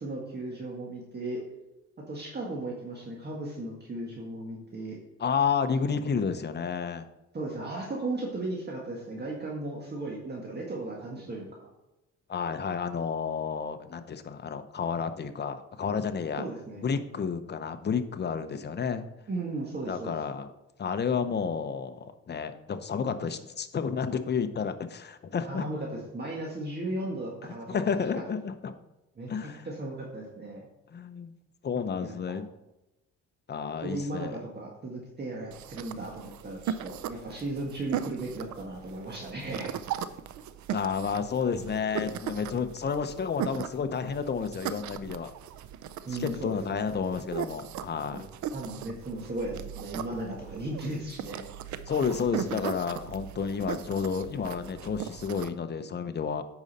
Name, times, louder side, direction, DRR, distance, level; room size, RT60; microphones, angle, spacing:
voice 1, 0.0-1.4 2.0-5.0 7.3-11.7 16.4-16.8 19.3-20.1 25.4-25.9 26.1-27.8 28.2-28.3 29.2-30.7 32.0-32.2 33.8-39.7 46.1-46.9 48.1-48.2 48.5-51.4, right 2 dB, 35° right, -2 dB, 1.8 m, -36 dB
voice 2, 5.2-7.1 12.3-16.4 16.8-19.0 19.9-20.5 20.8-25.7 27.4-28.7 29.3-29.7 30.9-31.3 31.6-32.5 33.5-34.3 40.7-45.3 46.1-48.3 51.9-56.4, left 6 dB, 35° left, 9 dB, 0.8 m, -31 dB
sound 1, 35.5-55.5, right 9 dB, 70° right, 0.6 m, -38 dB
8.8 x 5.4 x 4.2 m, 0.95 s
cardioid pair, 90°, 30 cm